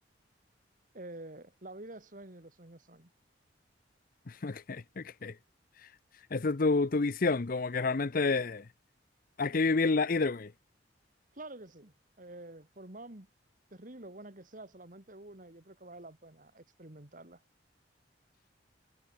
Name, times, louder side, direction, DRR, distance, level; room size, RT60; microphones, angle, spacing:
voice 1, 0.9-3.1 11.3-13.3 13.7-17.4, right 2 dB, 45° right, 2.3 m, -48 dB
voice 2, 4.3-5.3 5.8-5.9 6.3-8.7 9.4-10.5, left 3 dB, 50° left, 0.6 m, -29 dB
head